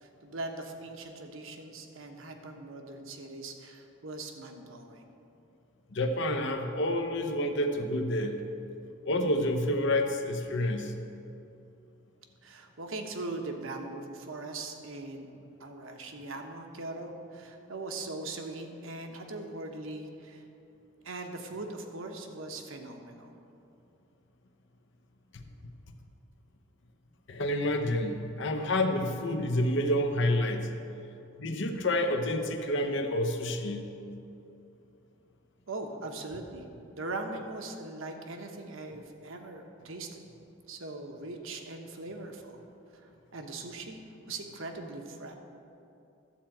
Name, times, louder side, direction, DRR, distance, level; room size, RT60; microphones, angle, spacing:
voice 1, 0.0-5.0 12.4-15.3 15.6-20.4 21.0-23.3 35.7-36.6 36.9-40.2 40.7-42.6 42.9-44.0 44.3-45.3, right 2 dB, 70° right, 4 dB, 1.0 m, -40 dB
voice 2, 5.9-8.4 9.0-10.9 25.3-25.4 27.3-30.7 31.4-33.9, left 1 dB, 60° left, 5 dB, 0.8 m, -29 dB
12.5 x 4.4 x 7.7 m, 2.7 s
head